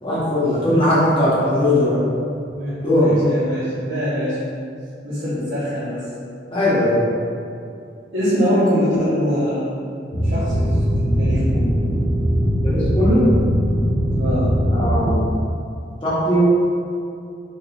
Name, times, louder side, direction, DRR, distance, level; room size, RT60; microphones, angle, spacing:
voice 1, 0.0-2.1 2.8-3.2 6.5-7.0 12.4-13.3 14.7-15.3 16.0-16.4, left 1 dB, 30° left, -9 dB, 1.3 m, -19 dB
voice 2, 0.6-1.0 2.5-4.4 5.0-6.1 8.1-9.7 10.2-10.8 11.2-11.8 14.1-14.5, equal, 75° right, -15 dB, 1.5 m, -23 dB
sound 1, 10.1-15.1, equal, 85° left, 1.2 m, -20 dB
4.9 x 3.7 x 2.7 m, 2.5 s
head